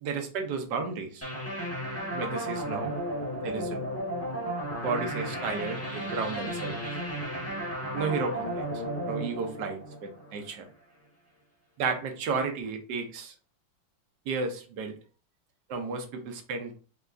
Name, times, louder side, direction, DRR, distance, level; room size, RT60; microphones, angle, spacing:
voice 1, 0.0-1.2 2.1-2.9 3.4-3.9 4.8-6.8 7.9-8.6 9.0-10.7 11.8-13.3 14.3-15.0 15.7-16.7, right 4 dB, 65° right, 5 dB, 1.3 m, -33 dB
sound 1, 1.2-10.6, right 1 dB, 10° left, 1.0 m, -34 dB
4.5 x 3.3 x 2.5 m, 0.37 s
omnidirectional pair, 2.1 m